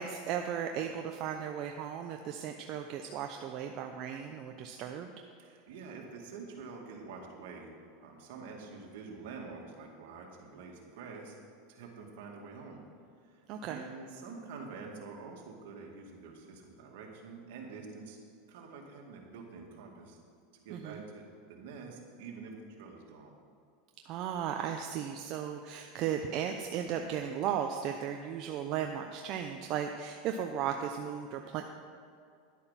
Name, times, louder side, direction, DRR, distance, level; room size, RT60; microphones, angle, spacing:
voice 1, 0.0-5.1 13.5-13.8 20.7-21.0 24.0-31.6, right 8 dB, 50° right, 4 dB, 0.7 m, -36 dB
voice 2, 5.4-7.7 8.0-11.3 11.7-12.8 13.3-18.2 18.5-20.2 20.6-23.3, right 4 dB, 70° right, 0 dB, 2.3 m, -47 dB
11.0 x 8.6 x 5.8 m, 2.3 s
supercardioid pair, 125°, 0 cm